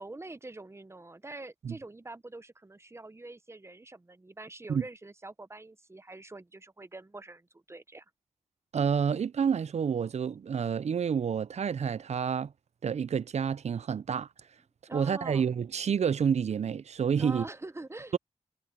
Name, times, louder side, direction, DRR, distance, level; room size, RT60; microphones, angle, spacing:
voice 1, 0.0-8.0 14.9-15.5 17.2-18.2, right 2 dB, 20° right, 0.7 m, -45 dB
voice 2, 8.7-12.5 12.8-14.3 14.9-17.4, right 7 dB, 65° right, 0.4 m, -29 dB
wide cardioid pair, 90°, 12 cm